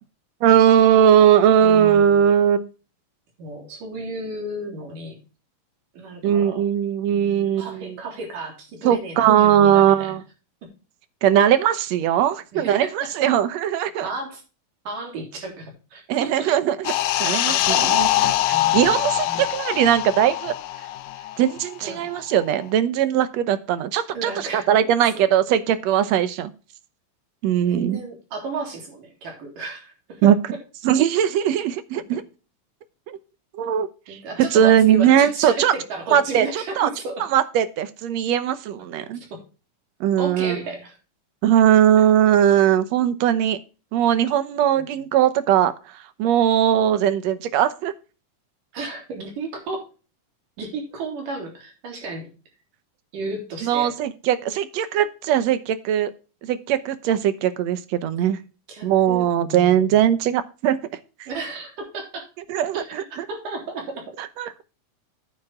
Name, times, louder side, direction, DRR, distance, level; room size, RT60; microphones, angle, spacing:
voice 1, 0.4-2.7 6.2-7.9 8.8-10.2 11.2-14.1 16.1-16.9 17.2-18.3 18.7-20.5 21.4-26.5 27.4-28.0 30.2-30.4 30.8-32.2 33.1-33.2 33.5-34.2 34.5-35.7 36.1-36.9 37.3-39.2 40.0-40.6 41.4-43.6 43.9-45.7 46.2-47.9 53.6-56.1 56.4-58.4 58.8-60.8 61.2-61.3 62.5-63.3 64.2-64.6, right 10 dB, 70° right, 13 dB, 1.9 m, -19 dB
voice 2, 1.6-2.2 3.4-5.2 5.9-6.6 7.1-10.2 12.5-13.3 14.0-14.4 14.8-16.5 17.4-18.1 18.5-18.9 19.3-19.4 21.8-22.1 24.1-25.2 27.7-30.3 32.1-32.2 34.1-37.2 39.3-39.4 40.2-41.0 44.8-45.1 48.7-49.9 50.6-52.3 53.1-53.9 58.7-60.1 61.3-62.3 62.7-64.2, right 2 dB, 90° right, 2 dB, 5.0 m, -33 dB
sound 1, 16.8-21.9 22.2-22.4, left 14 dB, 75° left, 1.8 m, -23 dB
9.8 x 9.0 x 3.6 m, 0.33 s
omnidirectional pair, 3.6 m